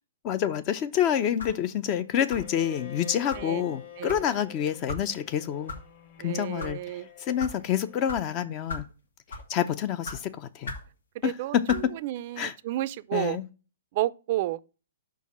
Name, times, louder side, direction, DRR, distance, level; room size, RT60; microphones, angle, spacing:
voice 1, 0.2-5.7 6.2-8.8 9.5-10.7 11.2-11.9 12.4-12.5 13.1-13.4, left 9 dB, 35° left, 0.5 m, -28 dB
sound 1, 1.4-1.6 2.3-2.6 3.3-3.5 4.1-4.3 4.9-5.0 5.7-5.8 6.4-6.7 7.4-7.5 8.1-8.2 8.7-8.9 9.3-9.5 10.0-10.2 10.6-10.9 11.7-11.9, left 2 dB, 80° left, 1.6 m, -37 dB
Bowed string instrument, 2.4-8.3, left 9 dB, 50° left, 2.0 m, -47 dB
voice 2, 6.2-7.1 11.2-11.6 12.0-13.4 13.9-14.6, right 15 dB, 45° right, 0.4 m, -31 dB
5.1 x 4.6 x 5.8 m
hypercardioid pair, 130°, 0 cm